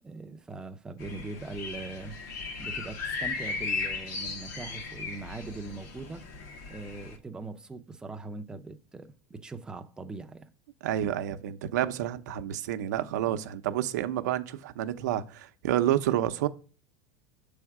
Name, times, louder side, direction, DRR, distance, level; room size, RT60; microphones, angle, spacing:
voice 1, 0.0-2.2 2.6-6.2 6.7-10.5, right 3 dB, 10° right, 0.4 m, -41 dB
sound 1, 1.0-7.2, left 4 dB, 75° left, 1.4 m, -36 dB
voice 2, 10.8-16.5, right 12 dB, 85° right, 0.6 m, -29 dB
7.2 x 3.4 x 4.7 m
supercardioid pair, 155°, 9 cm